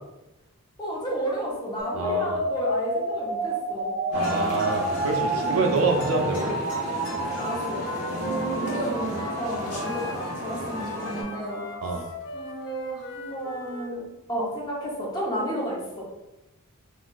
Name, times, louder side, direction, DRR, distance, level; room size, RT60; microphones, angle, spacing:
voice 1, 0.8-3.9 5.3-5.7 7.4-7.8 8.3-11.6 12.3-14.0 14.3-16.0, equal, 20° left, -4 dB, 0.7 m, -32 dB
sound 1, 1.8-11.8, right 1 dB, 30° right, 0.8 m, -31 dB
voice 2, 1.9-2.4 4.1-6.6 8.3-8.4 11.8-12.1, right 3 dB, 65° right, 3 dB, 0.4 m, -26 dB
sound 2, 4.1-11.2, equal, 75° left, 0.9 m, -33 dB
Wind instrument woodwind instrument, 7.4-13.9, equal, 55° left, 0.5 m, -38 dB
3.8 x 2.4 x 2.3 m, 0.98 s
head